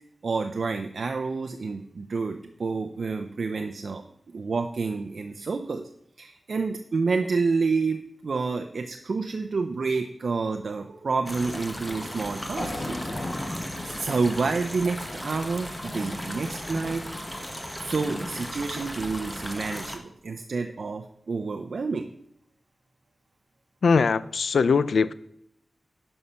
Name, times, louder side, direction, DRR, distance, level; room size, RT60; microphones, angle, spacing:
voice 1, 0.2-4.0 4.3-5.9 6.2-8.0 8.2-13.0 13.8-17.0 17.8-22.1, right 4 dB, 70° right, 0.6 m, -29 dB
sound 1, 11.3-20.0, equal, 10° left, 1.2 m, -36 dB
sound 2, 12.6-16.7, left 2 dB, 40° left, 1.8 m, -38 dB
voice 2, 23.8-25.1, left 5 dB, 85° left, 0.4 m, -21 dB
11.0 x 5.6 x 5.6 m
wide cardioid pair, 80°, 0 cm